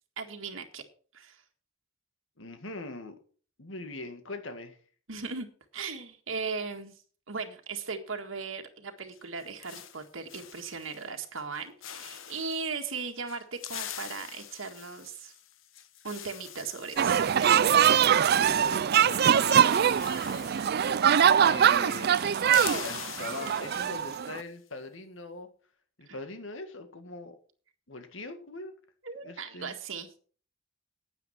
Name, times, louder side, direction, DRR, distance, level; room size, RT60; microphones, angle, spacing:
voice 1, 0.2-0.8 1.1-1.4 5.1-5.5 5.7-7.0 7.3-15.3 16.0-17.9 26.1-26.2 29.0-30.1, right 4 dB, 80° right, 1.8 m, -38 dB
voice 2, 2.4-3.2 3.6-4.8 18.6-20.5 21.4-25.5 26.0-27.4 27.9-28.7 29.2-29.8, left 2 dB, 70° left, 2.0 m, -42 dB
sound 1, 9.1-11.1 11.4-11.6 11.8-12.7 13.3-18.7 19.0-19.1 19.3-21.7 22.0-24.4, left 10 dB, 85° left, 1.1 m, -44 dB
sound 2, 17.0-24.4, right 8 dB, 55° right, 0.4 m, -23 dB
9.7 x 9.4 x 5.8 m
head